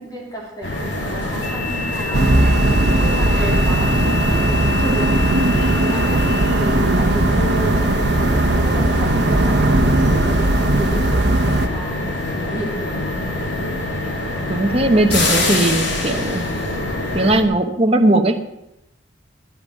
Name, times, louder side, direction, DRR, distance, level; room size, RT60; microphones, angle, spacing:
voice 1, 0.0-2.6 3.0-9.1 9.4-11.0 11.7-13.0, right 1 dB, 20° left, -3 dB, 3.2 m, -32 dB
sound 1, 0.6-17.4, left 2 dB, 75° left, 3.2 m, -25 dB
sound 2, 2.1-11.7, right 1 dB, 60° right, 1.1 m, -18 dB
voice 2, 14.5-16.4 17.1-18.5, right 1 dB, 35° right, 4 dB, 1.1 m, -18 dB
16.5 x 11.0 x 6.5 m, 0.88 s
head